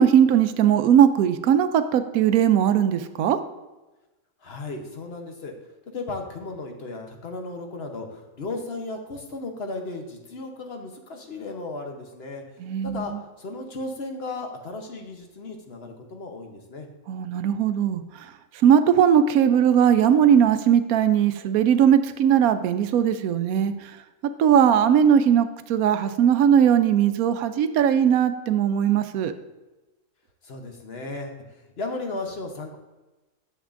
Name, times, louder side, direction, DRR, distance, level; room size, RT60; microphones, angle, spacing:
voice 1, 0.0-3.4 12.6-13.2 17.1-18.3 18.6-24.0 24.4-29.3, right 9 dB, 85° right, 10 dB, 1.0 m, -19 dB
voice 2, 4.4-5.6 5.9-12.4 12.8-16.9 30.4-32.8, left 2 dB, 50° left, 3 dB, 1.0 m, -35 dB
10.0 x 7.1 x 2.5 m, 1.1 s
omnidirectional pair, 1.5 m